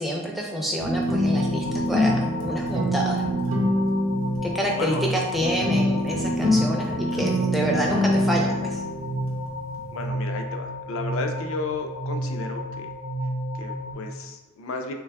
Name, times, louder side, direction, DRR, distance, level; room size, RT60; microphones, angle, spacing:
voice 1, 0.0-3.3 4.4-8.8, equal, ahead, -2 dB, 0.4 m, -28 dB
sound 1, 0.8-10.1, left 1 dB, 65° right, 0.7 m, -25 dB
sound 2, 1.2-13.9, equal, 90° left, 0.8 m, -31 dB
voice 2, 4.8-5.2 9.9-12.9 13.6-14.9, left 3 dB, 70° left, 4 dB, 0.4 m, -33 dB
3.1 x 2.2 x 3.4 m, 1.1 s
head